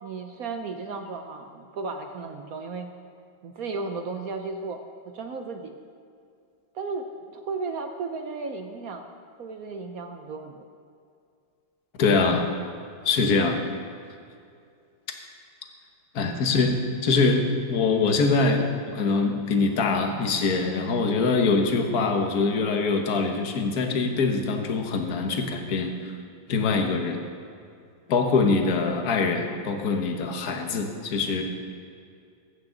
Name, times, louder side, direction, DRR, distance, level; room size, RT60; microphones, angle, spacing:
voice 1, 0.0-2.9 3.4-4.8 5.1-5.8 6.7-9.1 9.4-10.6, right 4 dB, 60° right, 5 dB, 1.0 m, -34 dB
voice 2, 12.0-12.4 13.0-13.6 16.1-17.4 17.7-26.1 26.5-27.2 28.1-31.4, left 4 dB, 55° left, 4 dB, 1.5 m, -23 dB
20.0 x 8.7 x 3.9 m, 2.4 s
omnidirectional pair, 2.2 m